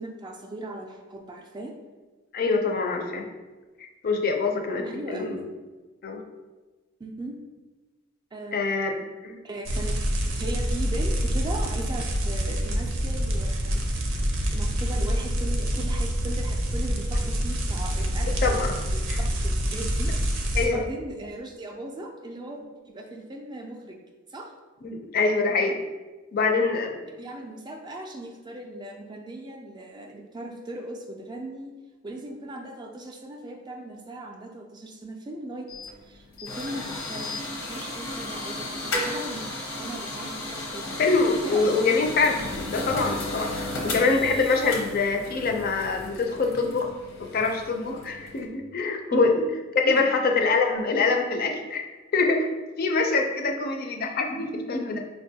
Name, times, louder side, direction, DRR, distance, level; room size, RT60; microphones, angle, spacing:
voice 1, 0.0-1.7 4.9-5.5 7.0-7.4 8.3-8.7 9.4-9.9 10.4-13.8 14.5-24.0 24.3-24.5 27.1-31.7 32.0-35.7 36.1-39.5 39.8-41.0 41.4-41.8 43.8-44.0 49.1-49.4 49.8-50.1, right 1 dB, 20° right, 1 dB, 0.3 m, -38 dB
voice 2, 2.3-3.2 4.0-5.4 6.0-6.2 8.5-8.9 9.2-9.4 18.4-18.7 19.1-19.2 20.5-20.8 24.8-25.8 26.3-27.0 40.8-46.9 47.2-49.4 49.8-51.8 52.1-52.5 52.8-55.0, left 4 dB, 50° left, 3 dB, 0.4 m, -24 dB
sound 1, 9.6-20.6, equal, 90° right, 0.5 m, -26 dB
sound 2, 35.7-48.5, left 2 dB, 90° left, 0.8 m, -34 dB
4.8 x 2.2 x 2.7 m, 1.2 s
head